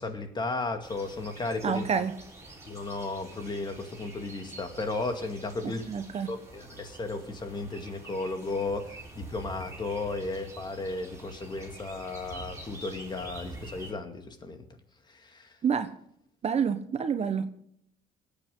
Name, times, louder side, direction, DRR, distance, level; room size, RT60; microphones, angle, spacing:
voice 1, 0.0-1.8 2.7-5.9 6.3-14.7 15.1-15.5, left 3 dB, 25° left, 6 dB, 2.2 m, -34 dB
sound 1, 0.8-13.9, right 2 dB, 15° right, 4.4 m, -46 dB
voice 2, 1.6-2.1 5.8-6.3 15.6-15.9 16.4-17.5, right 6 dB, 40° right, 10 dB, 1.1 m, -28 dB
19.5 x 8.9 x 3.8 m, 0.71 s
cardioid pair, 110°, 17 cm